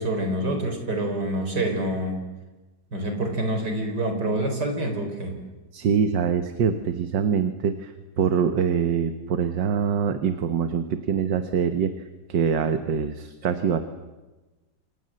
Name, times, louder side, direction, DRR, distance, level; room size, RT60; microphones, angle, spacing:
voice 1, 0.0-2.2 2.9-5.4, right 1 dB, 65° right, 5 dB, 5.0 m, -26 dB
voice 2, 5.7-11.9 12.3-13.8, right 7 dB, 80° right, 8 dB, 1.9 m, -24 dB
29.0 x 27.0 x 7.7 m, 1.2 s
omnidirectional pair, 1.9 m